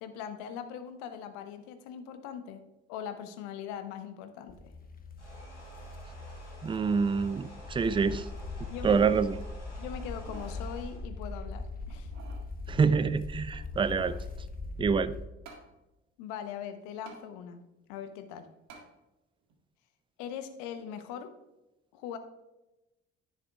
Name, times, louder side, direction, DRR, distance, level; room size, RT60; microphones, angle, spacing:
voice 1, 0.0-2.6 2.9-4.7 8.7-9.0 9.8-12.1 16.2-17.6 17.9-18.5 20.2-21.3 21.9-22.2, left 8 dB, 65° left, 9 dB, 1.0 m, -41 dB
sound 1, 4.5-15.3, left 3 dB, 25° left, 1.1 m, -41 dB
sound 2, 5.2-11.0, equal, 90° left, 1.8 m, -52 dB
voice 2, 6.6-8.3 8.8-9.4 12.7-14.1 14.8-15.1, right 5 dB, 15° right, 14 dB, 0.4 m, -26 dB
sound 3, 10.0-10.6 11.1-11.2 11.9-12.5 13.5-14.3 15.5-15.7 17.1-17.2 18.7-18.9 19.5-19.6, right 4 dB, 55° right, 1.7 m, -50 dB
10.5 x 10.0 x 2.4 m, 0.99 s
figure-of-eight pair, 50°, 33 cm